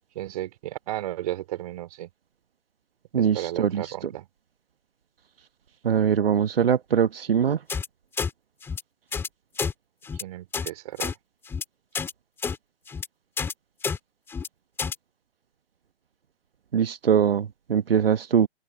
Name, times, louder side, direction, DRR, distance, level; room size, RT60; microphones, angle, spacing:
voice 1, 0.2-2.1 3.2-4.3 10.1-11.2, right 14 dB, 35° right, 3.7 m, -34 dB
voice 2, 3.1-3.9 5.8-7.6 16.7-18.5, right 8 dB, 65° right, 1.1 m, -22 dB
sound 1, 7.7-7.9 8.2-8.3 8.6-8.8 9.1-9.3 9.6-9.7 10.0-10.2 10.5-10.7 11.0-11.1 11.5-11.6 11.9-12.1 12.4-12.6 12.9-13.1 13.4-13.5 13.8-14.0 14.3-14.5 14.8-15.0, left 5 dB, 5° left, 2.3 m, -29 dB
open air
figure-of-eight pair, 140°, 31 cm